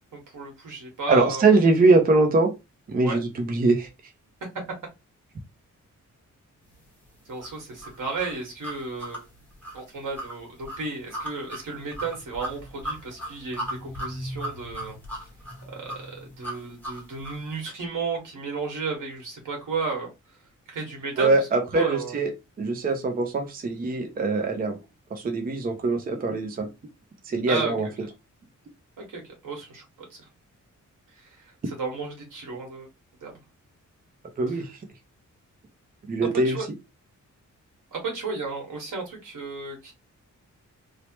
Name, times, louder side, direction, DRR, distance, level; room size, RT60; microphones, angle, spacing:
voice 1, 0.1-1.6 3.0-3.2 4.4-4.5 7.3-9.2 9.7-15.0 15.7-20.1 20.7-22.1 27.5-27.9 29.0-29.8 30.1-30.2 31.2-32.9 33.2-33.4 34.5-34.6 36.4-36.7 37.9-39.9, right 4 dB, 90° right, 1.5 m, -33 dB
voice 2, 1.1-2.5 2.9-3.9 21.2-22.3 22.6-24.8 25.1-26.7 27.3-27.9 34.4-34.8 36.1-36.6, right 3 dB, 30° right, 0.5 m, -22 dB
sound 1, 7.4-17.5, equal, 5° left, 0.9 m, -37 dB
3.2 x 2.0 x 2.9 m
wide cardioid pair, 175°, 31 cm